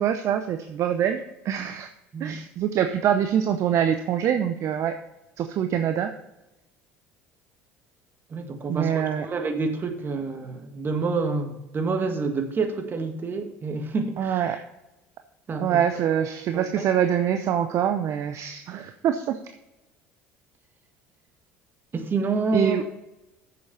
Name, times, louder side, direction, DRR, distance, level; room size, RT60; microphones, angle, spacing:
voice 1, 0.0-1.9 2.2-4.9 5.4-6.1 8.7-9.3 14.2-14.6 15.6-19.4 22.5-22.8, right 9 dB, 55° right, 7 dB, 0.7 m, -24 dB
voice 2, 8.3-14.6 15.5-15.8 16.5-16.9 21.9-22.9, right 4 dB, 35° right, 5 dB, 1.8 m, -28 dB
7.9 x 7.0 x 5.4 m, 0.93 s
hypercardioid pair, 70°, 6 cm